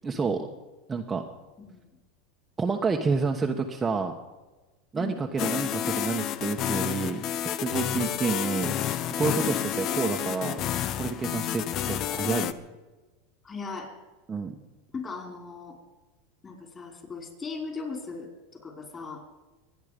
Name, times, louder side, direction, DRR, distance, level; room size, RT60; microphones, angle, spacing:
voice 1, 0.0-0.5 0.9-1.2 2.6-4.1 4.9-7.2 7.6-8.7 9.2-10.6 11.0-11.6 11.9-12.5 14.3-14.5, right 4 dB, 20° right, 2 dB, 1.2 m, -29 dB
voice 2, 1.6-1.9 5.0-5.2 7.9-8.1 13.4-13.9 14.9-15.7 16.4-19.2, left 4 dB, 25° left, 3 dB, 4.9 m, -38 dB
sound 1, 5.4-12.5, left 11 dB, 45° left, 0.8 m, -30 dB
24.5 x 9.6 x 5.2 m, 1.2 s
supercardioid pair, 115°, 0 cm